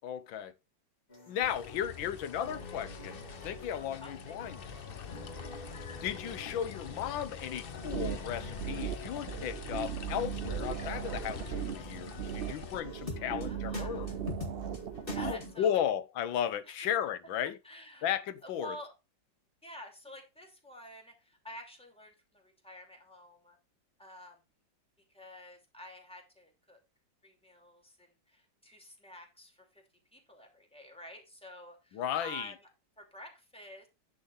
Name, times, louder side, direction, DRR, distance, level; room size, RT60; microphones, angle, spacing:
voice 1, 0.0-0.5 1.3-4.6 6.0-14.1 15.2-17.6 18.0-18.8 31.9-32.5, left 9 dB, 90° left, 1.6 m, -35 dB
sound 1, 1.1-15.6, left 3 dB, 30° left, 2.2 m, -46 dB
sound 2, 1.4-12.8, left 8 dB, 65° left, 0.5 m, -46 dB
voice 2, 4.0-4.4 12.4-12.6 13.0-14.1 15.1-15.8 16.7-16.9 17.6-18.1 18.4-18.9 19.6-23.6 24.0-24.4 25.1-26.8 27.2-29.8 30.1-32.5 33.0-33.9, equal, 5° left, 2.7 m, -50 dB
sound 3, 7.8-15.5, right 10 dB, 80° right, 0.5 m, -38 dB
10.5 x 4.1 x 5.6 m
omnidirectional pair, 2.0 m